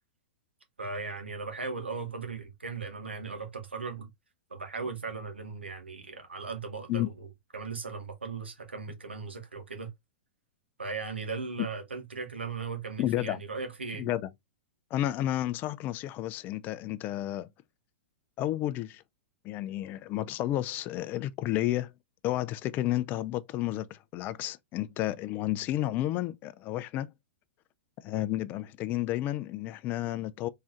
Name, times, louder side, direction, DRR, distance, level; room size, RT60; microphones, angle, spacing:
voice 1, 0.8-4.1 4.5-7.3 7.5-9.9 10.8-14.1, right 4 dB, 90° right, 1.2 m, -37 dB
voice 2, 13.0-13.4 14.0-14.3 14.9-17.5 18.4-19.0 19.4-21.9 22.2-27.1 28.0-30.5, left 14 dB, 35° left, 0.4 m, -31 dB
3.7 x 3.1 x 2.4 m
hypercardioid pair, 110°, 6 cm